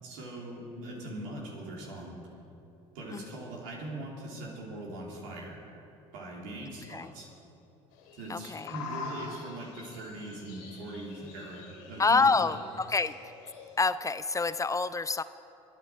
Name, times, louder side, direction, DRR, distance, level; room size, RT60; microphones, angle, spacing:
voice 1, 0.0-2.2 2.9-5.6 6.1-7.3 8.1-12.4, right 1 dB, 85° right, -3 dB, 3.4 m, -41 dB
sound 1, 7.9-13.9, left 4 dB, 85° left, 3.0 m, -45 dB
voice 2, 8.3-8.7 12.0-13.2 13.8-15.2, left 4 dB, 20° left, 14 dB, 0.4 m, -27 dB
24.0 x 9.5 x 4.7 m, 2.9 s
supercardioid pair, 80°, 16 cm